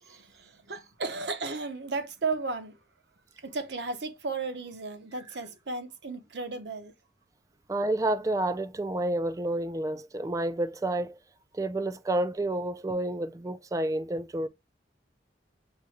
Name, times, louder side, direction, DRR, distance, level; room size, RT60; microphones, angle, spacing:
voice 1, 0.0-2.8 3.4-6.9, right 3 dB, 75° right, 0.8 m, -34 dB
voice 2, 7.7-11.2 11.5-14.5, right 1 dB, 20° right, 0.3 m, -29 dB
6.6 x 2.2 x 2.8 m
head